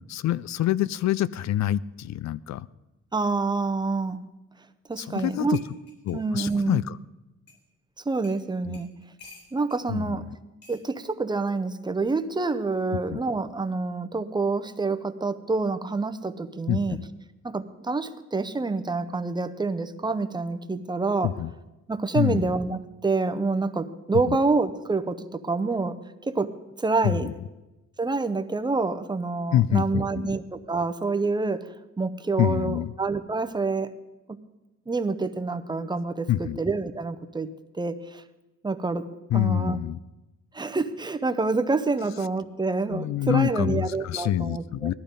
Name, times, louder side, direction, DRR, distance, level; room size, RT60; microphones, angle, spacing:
voice 1, 0.1-2.7 5.0-5.6 6.1-7.0 8.7-8.8 9.9-10.2 12.9-13.2 16.7-17.0 21.2-21.5 22.1-22.5 24.3-24.4 27.0-27.3 29.5-30.3 32.4-32.9 36.3-36.6 39.3-40.0 42.9-44.9, left 12 dB, 65° left, 19 dB, 0.5 m, -26 dB
voice 2, 3.1-4.2 4.9-5.6 6.1-6.8 8.1-8.9 9.5-10.3 10.7-17.0 17.4-21.3 21.9-26.5 26.8-27.3 28.0-31.7 32.0-33.9 34.3-34.4 34.9-37.5 37.7-38.2 38.6-39.1 39.3-39.8 40.5-44.9, right 3 dB, 15° right, 9 dB, 0.6 m, -27 dB
sound 1, 5.5-6.7 7.5-7.6 8.2-8.4 8.7-9.8 10.6-10.8 12.0-12.2, left 4 dB, 35° left, 3.8 m, -51 dB
18.5 x 12.5 x 5.2 m, 1.0 s
wide cardioid pair, 160°, 29 cm